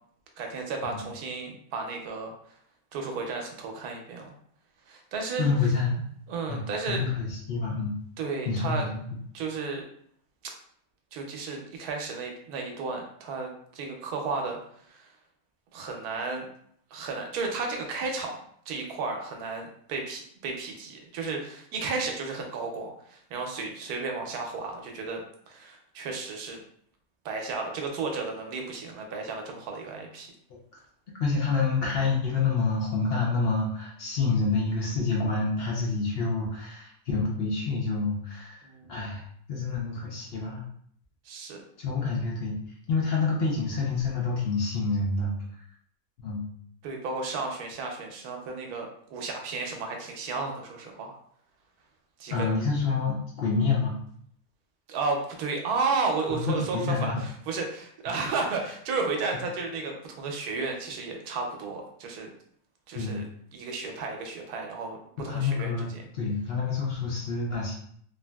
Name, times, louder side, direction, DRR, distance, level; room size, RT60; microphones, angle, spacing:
voice 1, 0.4-2.3 2.9-4.3 4.9-5.5 6.3-7.0 8.2-8.9 9.3-9.9 11.1-14.6 14.9-15.1 15.7-16.5 16.9-18.4 18.7-25.2 25.5-26.6 27.2-30.3 38.6-38.9 41.2-41.6 42.0-42.1 46.8-51.2 52.2-52.5 54.9-62.3 62.9-63.2 63.5-66.0, right 4 dB, 90° right, 2 dB, 1.1 m, -33 dB
voice 2, 5.4-6.0 6.5-7.9 8.5-9.0 31.2-38.6 38.9-39.2 39.5-40.6 41.8-42.5 42.9-45.3 46.2-46.5 52.3-53.9 56.3-57.2 62.9-63.2 65.2-65.9 66.1-67.7, left 4 dB, 55° left, -4 dB, 0.7 m, -27 dB
3.2 x 2.6 x 2.2 m, 0.66 s
omnidirectional pair, 1.6 m